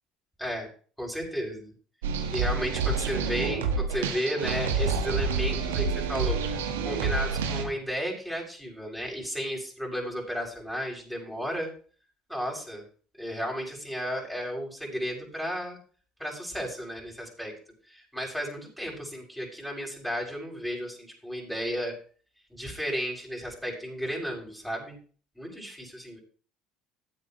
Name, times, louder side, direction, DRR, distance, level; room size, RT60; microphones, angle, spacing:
voice 1, 1.0-1.7 2.3-11.7 12.3-12.8 13.2-15.8 16.2-17.6 17.9-22.0 22.5-25.0 25.4-26.2, equal, ahead, -1 dB, 7.1 m, -33 dB
sound 1, 2.0-7.6, right 4 dB, 85° right, 1.6 m, -28 dB
15.5 x 9.0 x 3.2 m, 0.41 s
hypercardioid pair, 70°, 0 cm